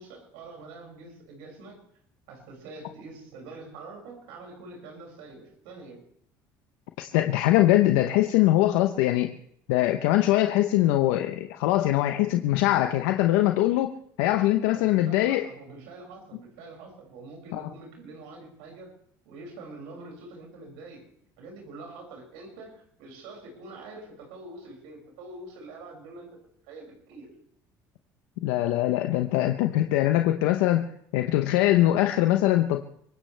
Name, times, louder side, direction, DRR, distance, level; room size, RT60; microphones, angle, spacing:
voice 1, 0.0-1.8 2.3-6.0 14.7-18.9 19.2-21.0 21.4-26.4 26.7-27.3, right 3 dB, 80° right, 0 dB, 6.3 m, -45 dB
voice 2, 7.0-9.3 9.7-15.5 17.5-17.7 28.4-32.8, left 14 dB, 80° left, 6 dB, 0.9 m, -22 dB
25.0 x 16.5 x 3.4 m, 0.70 s
supercardioid pair, 80°, 9 cm